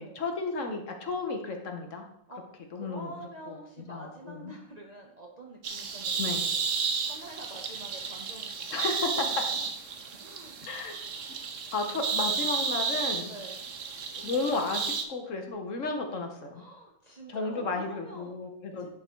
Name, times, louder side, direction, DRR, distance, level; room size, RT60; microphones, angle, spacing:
voice 1, 0.0-2.1 2.7-3.6 3.9-4.5 6.2-6.4 8.7-9.3 10.6-11.0 11.7-13.3 14.2-16.6 17.3-18.9, left 3 dB, 70° left, 4 dB, 1.4 m, -33 dB
voice 2, 2.7-8.9 9.2-9.6 10.0-10.7 13.2-13.6 16.5-18.4 18.8-18.9, right 1 dB, 35° right, 0 dB, 0.9 m, -47 dB
sound 1, 5.6-15.0, right 5 dB, 70° right, 1.1 m, -32 dB
10.0 x 3.8 x 4.6 m, 0.76 s
omnidirectional pair, 1.4 m